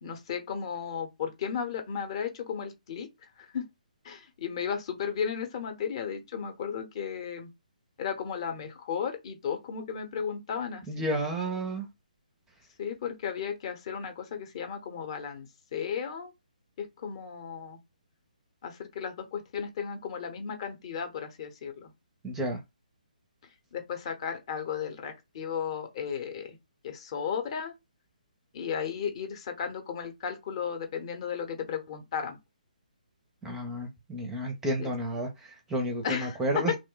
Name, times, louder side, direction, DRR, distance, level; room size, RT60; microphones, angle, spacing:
voice 1, 0.0-3.7 4.0-7.5 8.0-11.1 12.8-16.3 16.8-17.8 18.6-21.9 23.7-26.6 26.8-27.7 28.5-32.4 34.8-34.9 36.0-36.8, left 7 dB, 40° left, 0.8 m, -34 dB
voice 2, 10.9-11.9 22.2-22.6 33.4-36.7, right 1 dB, 10° right, 0.5 m, -31 dB
2.9 x 2.1 x 3.8 m
figure-of-eight pair, 150°, 5 cm